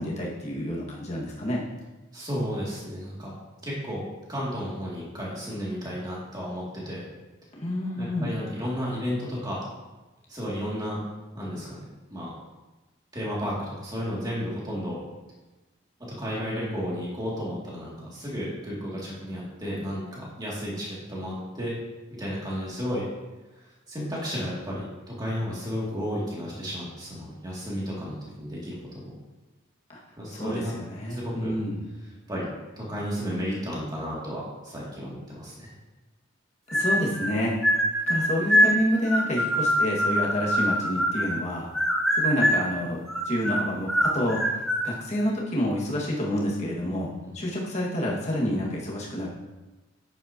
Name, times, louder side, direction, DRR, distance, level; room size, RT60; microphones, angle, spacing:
voice 1, 0.0-1.6 7.6-8.4 29.9-30.0 30.3-31.8 36.7-37.5 38.1-41.7 42.1-49.3, left 1 dB, 30° left, -4 dB, 1.9 m, -28 dB
voice 2, 2.1-3.3 3.6-7.0 7.9-9.6 10.3-11.0 11.3-11.8 12.1-12.3 13.1-15.0 16.2-21.7 22.2-23.0 23.9-29.1 30.2-30.7 31.1-31.5 32.3-35.7 47.2-47.3, equal, 20° right, -6 dB, 2.6 m, -33 dB
sound 1, 36.7-37.3 37.6-41.5 41.7-42.7 43.1-44.9, equal, ahead, 0.7 m, -24 dB
10.0 x 8.9 x 3.0 m, 1.1 s
head